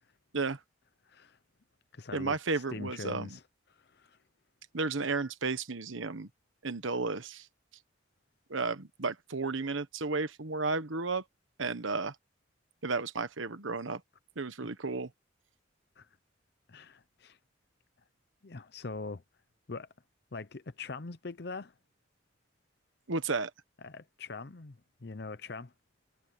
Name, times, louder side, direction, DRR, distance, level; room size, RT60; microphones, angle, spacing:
voice 1, 1.1-1.4 1.9-3.4 3.7-4.2 16.0-16.1 16.7-17.4 18.4-19.2 19.7-19.9 20.3-21.7 23.8-25.7, left 3 dB, 55° left, 0.7 m, -43 dB
voice 2, 2.1-3.4 4.7-6.3 6.6-7.5 8.5-11.2 11.6-12.1 12.8-14.0 14.4-15.1 23.1-23.5, right 3 dB, 85° right, 1.3 m, -33 dB
head